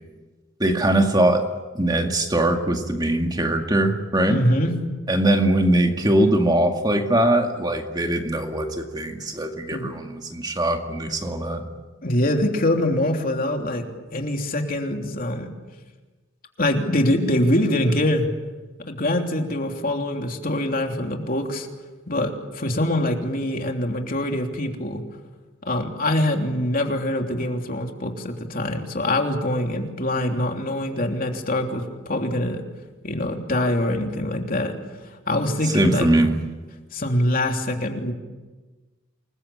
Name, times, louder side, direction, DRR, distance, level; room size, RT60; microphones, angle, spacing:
voice 1, 0.6-1.4 1.7-4.4 5.1-11.6 35.6-36.3, right 1 dB, 20° right, 4 dB, 2.1 m, -21 dB
voice 2, 4.3-4.7 9.7-9.9 12.0-13.8 14.1-15.5 16.6-18.3 18.9-21.7 22.1-25.0 25.6-32.6 33.0-34.7 35.3-36.1 36.9-38.1, left 1 dB, 45° left, 3 dB, 3.2 m, -24 dB
28.5 x 21.5 x 8.7 m, 1.3 s
head